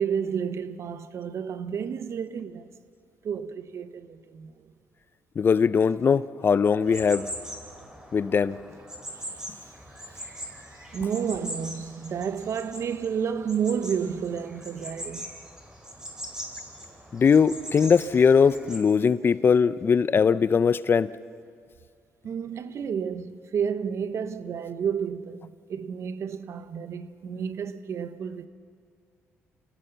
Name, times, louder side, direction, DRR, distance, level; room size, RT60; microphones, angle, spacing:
voice 1, 0.0-2.7 3.2-4.5 10.9-15.3 22.2-28.5, right 7 dB, 60° right, 1.0 m, -31 dB
voice 2, 5.4-7.3 8.1-8.6 17.1-21.1, left 6 dB, 40° left, 0.6 m, -20 dB
sound 1, 6.9-18.8, equal, 10° right, 4.6 m, -41 dB
27.0 x 16.0 x 6.9 m
cardioid pair, 75°, 5 cm